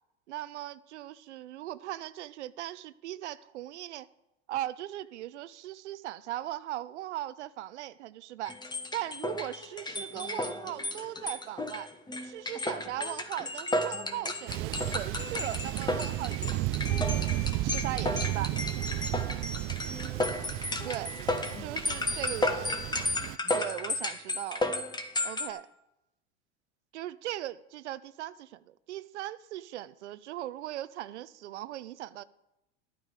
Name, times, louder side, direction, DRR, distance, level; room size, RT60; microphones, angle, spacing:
voice 1, 0.3-4.1 4.5-8.6 8.9-11.9 12.2-18.5 20.8-21.1 21.6-22.8 23.5-24.7 25.2-25.7 26.9-32.2, right 14 dB, 85° right, 0.6 m, -39 dB
sound 1, 8.4-25.5, left 2 dB, 10° left, 1.2 m, -33 dB
Thunder, 14.5-23.4, right 17 dB, 40° right, 0.4 m, -33 dB
12.0 x 8.8 x 4.9 m
hypercardioid pair, 100°, 34 cm